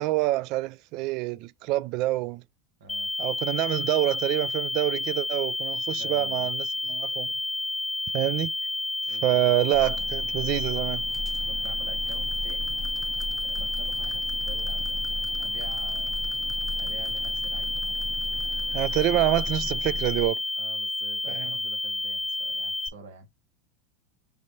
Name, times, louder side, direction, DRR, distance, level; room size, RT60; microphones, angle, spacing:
voice 1, 0.0-2.4 3.2-7.3 8.1-8.5 9.2-11.0 18.7-20.4 21.3-21.5, right 17 dB, 55° right, 0.3 m, -26 dB
sound 1, 2.9-22.9, left 2 dB, 20° left, 0.4 m, -30 dB
voice 2, 5.9-6.5 9.0-9.5 9.8-10.0 11.4-12.8 13.4-15.1 15.4-16.1 16.8-17.8 20.6-23.3, right 5 dB, 85° right, 1.4 m, -47 dB
sound 2, 9.7-20.3, left 1 dB, 30° right, 0.9 m, -36 dB
5.2 x 3.1 x 2.7 m
hypercardioid pair, 110°, 0 cm